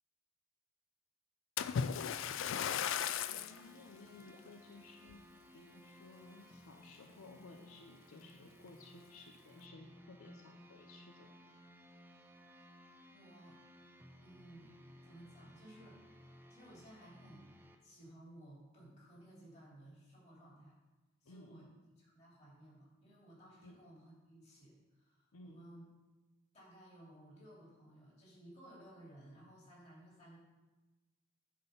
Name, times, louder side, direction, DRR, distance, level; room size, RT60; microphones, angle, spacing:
Splash splatter, 1.6-3.6 4.3-4.5 5.1-5.2, left 8 dB, 65° left, 0.3 m, -36 dB
sound 1, 2.7-17.8, equal, 10° right, 0.5 m, -59 dB
voice 1, 3.3-11.3 21.2-21.8 23.6-23.8 25.3-25.6, left 2 dB, 85° left, 3 dB, 0.7 m, -57 dB
voice 2, 13.1-13.6 14.2-16.0 16.5-17.5 17.8-20.8 21.2-21.7 22.0-25.8 26.5-30.4, right 1 dB, 30° left, -5 dB, 3.0 m, -57 dB
10.5 x 4.4 x 5.5 m, 1.2 s
head